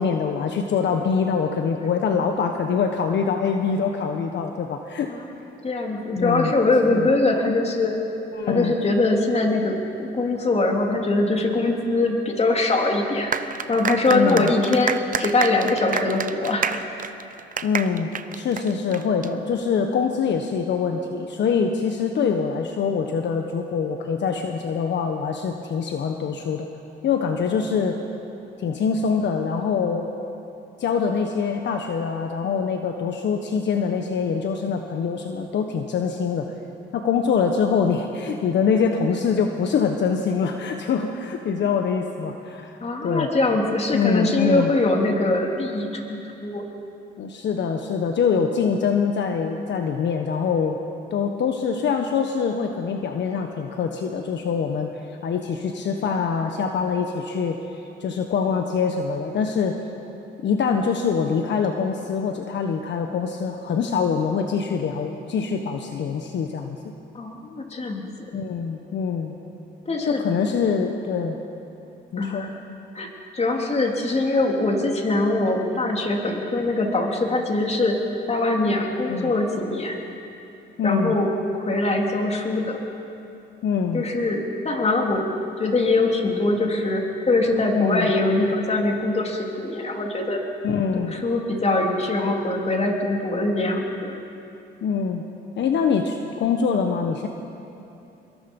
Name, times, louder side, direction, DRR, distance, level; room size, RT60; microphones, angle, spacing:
voice 1, 0.0-5.1 6.1-6.5 6.9-7.1 8.3-8.7 14.1-14.5 17.6-18.1 18.3-26.7 27.0-28.0 28.6-30.1 30.8-36.5 36.9-42.8 43.0-43.3 43.9-44.7 47.2-50.8 51.1-59.8 60.4-66.8 68.3-69.3 70.1-71.4 72.1-72.5 79.1-79.3 80.8-81.1 83.6-84.0 87.7-88.1 90.6-91.1 94.8-95.2 95.6-97.3, left 6 dB, 65° left, 4 dB, 1.4 m, -24 dB
voice 2, 5.6-8.0 8.5-13.3 13.7-17.0 42.8-46.6 67.1-68.3 69.8-70.2 72.2-72.5 72.9-78.0 78.3-80.0 80.8-82.8 83.9-85.3 85.6-90.4 91.0-94.1, left 2 dB, 30° left, 1 dB, 3.3 m, -22 dB
sound 1, 13.3-19.3, right 7 dB, 45° right, 0.9 m, -29 dB
26.0 x 22.0 x 5.5 m, 2.8 s
cardioid pair, 90°, 20 cm